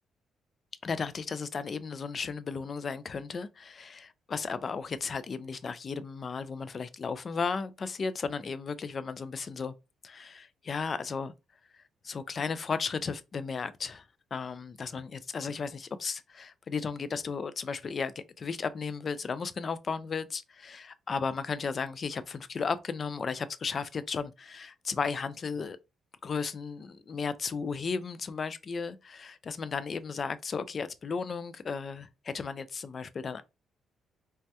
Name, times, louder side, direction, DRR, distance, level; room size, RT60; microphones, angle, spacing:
voice 1, 0.8-9.7 10.0-11.3 12.0-14.0 14.3-25.8 26.2-33.4, left 5 dB, 45° left, 0.3 m, -35 dB
3.3 x 2.1 x 2.7 m
cardioid pair, 90°, 0 cm